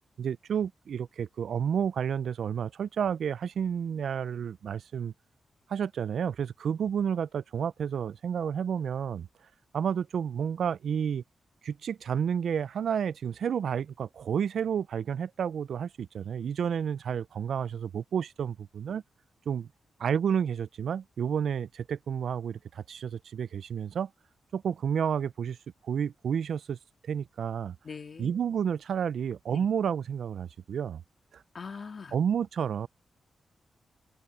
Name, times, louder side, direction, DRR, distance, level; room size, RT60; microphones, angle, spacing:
voice 1, 0.2-5.1 5.7-9.3 9.7-11.2 11.6-19.0 19.5-19.7 20.0-24.1 24.5-25.6 25.8-26.8 27.1-27.8 28.2-31.0 31.3-31.4 32.1-32.9, right 8 dB, 75° right, 0.3 m, -30 dB
voice 2, 27.8-28.4 29.5-29.7 31.5-32.2, left 5 dB, 40° left, 2.7 m, -42 dB
open air
wide cardioid pair, 160°, 0 cm